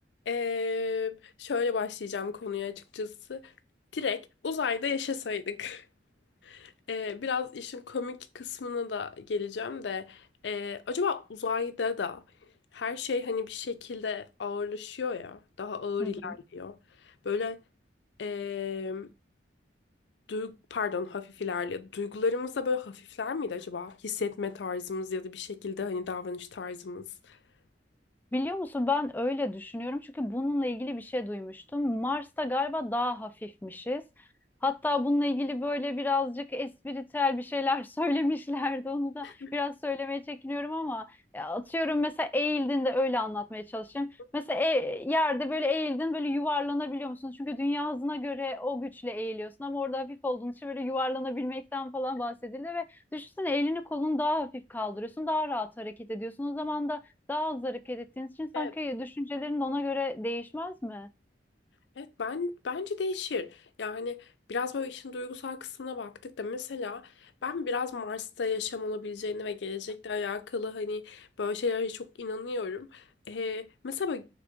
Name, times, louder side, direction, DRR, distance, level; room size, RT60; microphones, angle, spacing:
voice 1, 0.3-3.5 3.9-5.8 6.4-12.2 12.7-16.8 17.2-17.6 18.2-19.1 20.3-27.4 39.2-39.5 58.5-58.7 62.0-74.3, left 5 dB, 75° left, 0.5 m, -33 dB
voice 2, 16.0-16.3 28.3-34.0 34.6-57.0 57.3-61.1, left 2 dB, 10° left, 0.3 m, -31 dB
3.8 x 3.4 x 3.5 m
head